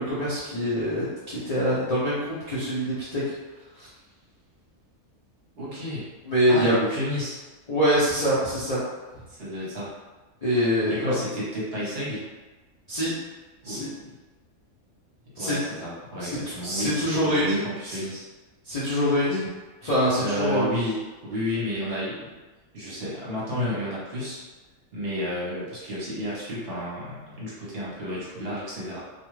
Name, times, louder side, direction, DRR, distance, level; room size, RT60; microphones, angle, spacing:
voice 1, 0.0-3.2 3.8-3.9 6.3-6.8 7.7-8.8 10.4-11.2 12.9-13.1 13.6-13.9 15.4-15.6 16.2-17.6 17.8-18.0 18.6-19.4 19.8-20.7, equal, 45° left, -10 dB, 0.5 m, -24 dB
voice 2, 5.6-6.1 6.5-7.4 9.3-9.9 10.8-12.3 13.6-13.9 15.4-18.2 20.1-22.2 22.7-24.4 24.9-29.0, equal, 50° right, -7 dB, 0.9 m, -31 dB
2.4 x 2.3 x 3.1 m, 1.2 s
omnidirectional pair, 1.5 m